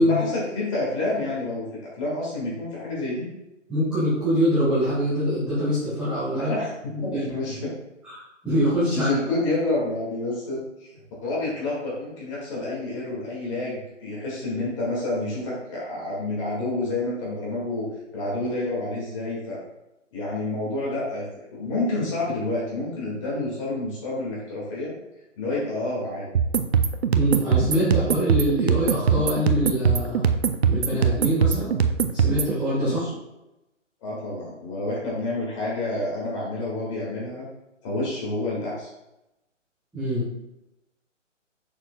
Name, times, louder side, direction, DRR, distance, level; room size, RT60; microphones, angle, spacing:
voice 1, 0.0-3.3 6.4-7.7 8.9-10.9 11.2-17.9 18.1-19.6 20.1-21.2 21.5-24.9 25.4-26.3 32.8-33.2 34.0-37.4 37.8-38.9, left 2 dB, 25° left, -6 dB, 2.1 m, -29 dB
voice 2, 3.7-6.5 7.1-7.4 8.0-8.1 8.4-9.1 27.1-30.3 30.6-31.7 32.1-33.0 39.9-40.2, equal, ahead, -15 dB, 1.8 m, -24 dB
sound 1, 26.3-32.5, right 6 dB, 55° right, 0.5 m, -22 dB
6.4 x 6.3 x 2.3 m, 0.93 s
hypercardioid pair, 155°, 38 cm